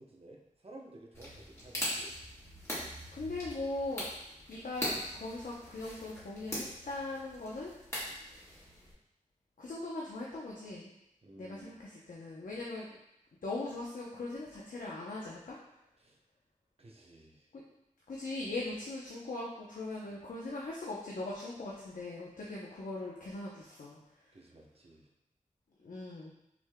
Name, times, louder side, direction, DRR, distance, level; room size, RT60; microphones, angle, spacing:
voice 1, 0.0-2.2 8.0-8.2 11.2-11.8 16.0-16.2 16.8-17.5 20.1-20.2 24.3-25.1, right 2 dB, 45° right, 0 dB, 0.8 m, -54 dB
sound 1, 1.1-8.9, equal, 20° left, 1.7 m, -41 dB
voice 2, 2.8-4.1 4.5-7.7 9.6-10.9 11.4-12.9 13.4-15.6 17.5-17.6 18.1-24.0 24.2-24.3 25.8-26.3, left 2 dB, 80° left, -5 dB, 0.7 m, -40 dB
6.1 x 3.6 x 2.2 m, 0.82 s
wide cardioid pair, 90°, 14 cm